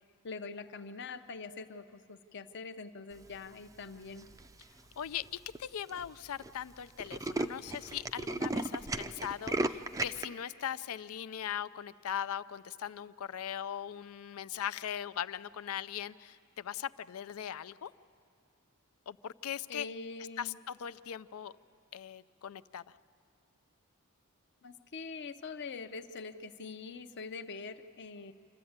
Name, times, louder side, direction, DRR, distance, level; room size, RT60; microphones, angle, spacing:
voice 1, 0.2-4.3 19.7-20.6 24.6-28.3, left 4 dB, 55° left, 10 dB, 0.7 m, -44 dB
Tools, 4.2-4.6 5.2-5.3 5.6-5.7 5.9-6.1 6.4-6.5 6.8-10.3, right 2 dB, 15° right, 0.4 m, -34 dB
voice 2, 5.0-17.9 19.1-19.9 20.4-21.5 21.9-22.8, left 9 dB, 80° left, 17 dB, 0.4 m, -40 dB
26.5 x 13.5 x 8.7 m, 2.5 s
head